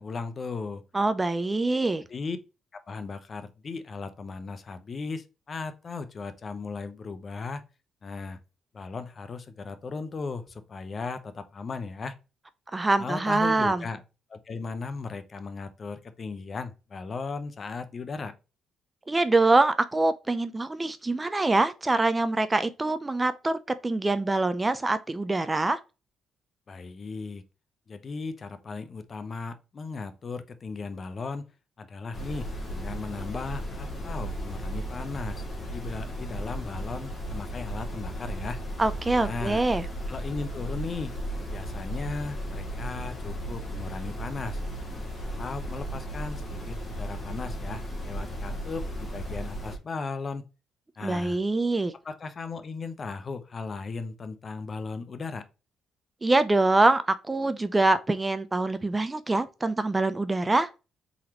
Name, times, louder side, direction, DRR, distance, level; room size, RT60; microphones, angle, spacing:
voice 1, 0.0-0.8 2.1-2.4 2.7-7.6 8.0-8.4 8.7-12.2 13.0-14.0 14.3-18.3 26.7-27.4 27.9-31.5 31.8-38.6 39.2-39.6 40.1-41.1 41.5-44.6 45.4-50.4 51.0-51.4 52.0-55.4, left 4 dB, 40° left, 0.7 m, -36 dB
voice 2, 0.9-2.0 12.7-13.8 19.1-25.8 38.8-39.9 51.0-51.9 56.2-60.7, right 2 dB, 20° right, 0.4 m, -24 dB
sound 1, 32.1-49.8, equal, 25° left, 2.1 m, -35 dB
4.5 x 4.0 x 2.9 m
cardioid pair, 90°, 0 cm